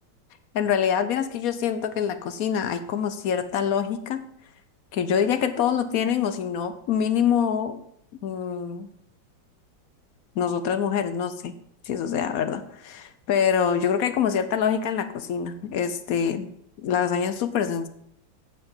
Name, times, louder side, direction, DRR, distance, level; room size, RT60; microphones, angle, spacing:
voice 1, 0.5-4.2 4.9-7.8 8.2-8.9 10.4-11.5 11.9-16.5 16.8-17.9, left 8 dB, 65° left, 10 dB, 0.9 m, -25 dB
8.7 x 6.9 x 5.5 m, 0.70 s
omnidirectional pair, 2.1 m